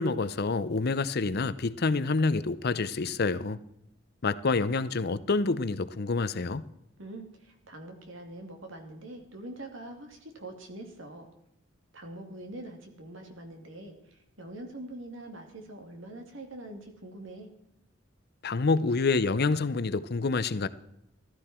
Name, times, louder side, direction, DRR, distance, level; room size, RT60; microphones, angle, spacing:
voice 1, 0.0-3.6 4.2-6.7 18.4-20.7, left 3 dB, 50° left, 0.7 m, -27 dB
voice 2, 7.0-11.3 11.9-17.5, right 1 dB, 70° right, 2.8 m, -44 dB
15.0 x 13.0 x 4.4 m
head